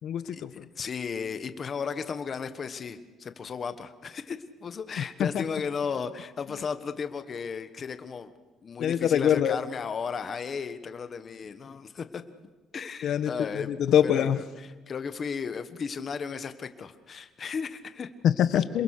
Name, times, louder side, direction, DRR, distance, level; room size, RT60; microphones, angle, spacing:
voice 1, 0.0-0.7 5.0-5.4 6.5-6.6 8.8-9.6 13.0-14.4 18.2-18.8, left 9 dB, 55° left, 12 dB, 1.2 m, -25 dB
voice 2, 0.8-8.3 8.6-12.2 12.7-13.7 14.0-14.4 14.9-18.1, left 6 dB, 30° left, 10 dB, 1.3 m, -35 dB
27.5 x 21.5 x 6.6 m, 1.2 s
cardioid pair, 165°, 0 cm